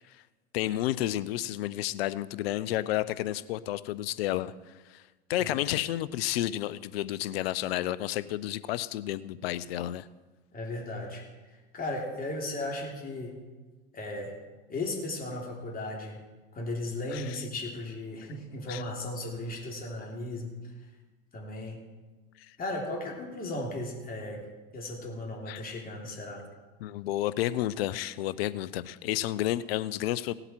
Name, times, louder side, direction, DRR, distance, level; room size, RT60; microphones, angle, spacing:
voice 1, 0.5-4.5 4.9-5.0 5.3-10.1 17.1-17.4 18.7-18.8 25.5-25.6 26.8-30.3, left 14 dB, 80° left, 17 dB, 0.6 m, -31 dB
voice 2, 10.5-13.4 13.9-14.3 14.7-16.2 16.5-20.7 21.3-21.8 22.6-24.4 24.7-26.4, left 2 dB, 30° left, -1 dB, 3.3 m, -36 dB
17.5 x 7.9 x 4.5 m, 1.3 s
hypercardioid pair, 90°, 30 cm